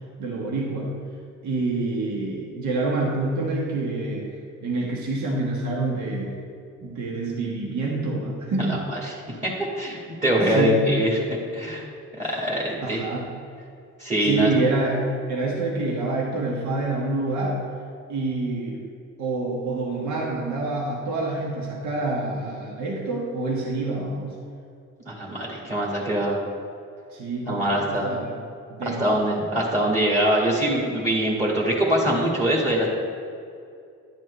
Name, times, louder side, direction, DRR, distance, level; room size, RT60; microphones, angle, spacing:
voice 1, 0.2-0.9 1.4-6.3 6.8-8.8 10.5-10.9 12.2-12.3 12.8-13.2 14.2-17.6 18.1-18.8 19.2-24.4 27.1-28.4 28.7-29.5, right 2 dB, 70° right, -2 dB, 1.4 m, -27 dB
voice 2, 8.6-9.1 9.4-9.5 9.8-11.8 12.2-13.1 14.0-14.5 25.1-26.4 27.5-28.1 28.8-32.9, equal, 25° right, -4 dB, 1.8 m, -23 dB
11.0 x 7.5 x 3.2 m, 2.4 s
cardioid pair, 90°, 30 cm